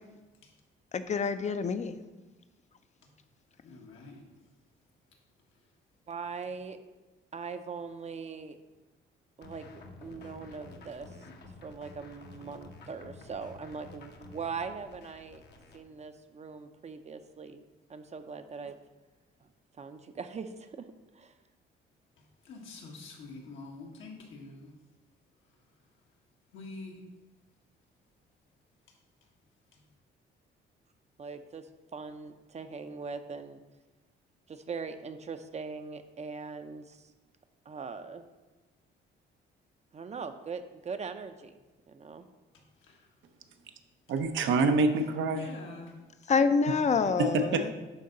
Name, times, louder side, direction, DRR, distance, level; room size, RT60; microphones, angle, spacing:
voice 1, 0.9-2.0 46.3-47.7, left 5 dB, 35° left, 11 dB, 0.5 m, -27 dB
voice 2, 3.6-4.2 22.4-24.7 26.5-27.0 29.7-29.8 42.8-43.1 45.3-45.9, left 3 dB, 80° left, 0 dB, 1.4 m, -46 dB
voice 3, 6.1-6.8 7.3-8.6 9.4-11.1 11.4-15.4 15.7-17.6 17.9-18.8 19.4-19.5 19.8-21.3 31.2-33.6 34.5-37.1 37.7-38.2 39.9-41.6 41.9-42.3, right 5 dB, 35° right, 9 dB, 0.5 m, -41 dB
sound 1, 9.4-15.8, left 3 dB, 60° left, 0.9 m, -50 dB
voice 4, 44.1-45.5 47.2-47.7, right 3 dB, 75° right, 7 dB, 0.7 m, -26 dB
10.5 x 3.8 x 3.8 m, 1.2 s
cardioid pair, 90°, 20 cm